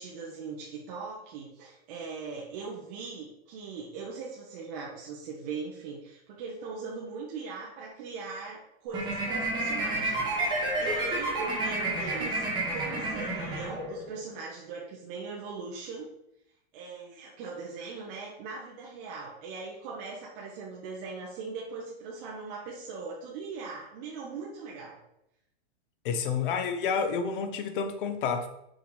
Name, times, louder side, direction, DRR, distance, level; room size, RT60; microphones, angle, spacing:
voice 1, 0.0-16.1 16.7-25.0, right 4 dB, 35° right, -4 dB, 1.2 m, -40 dB
sound 1, 8.9-14.2, right 2 dB, 15° right, 1.7 m, -30 dB
voice 2, 26.0-28.5, left 6 dB, 50° left, 8 dB, 1.0 m, -29 dB
6.1 x 4.8 x 4.9 m, 0.82 s
supercardioid pair, 170°, 33 cm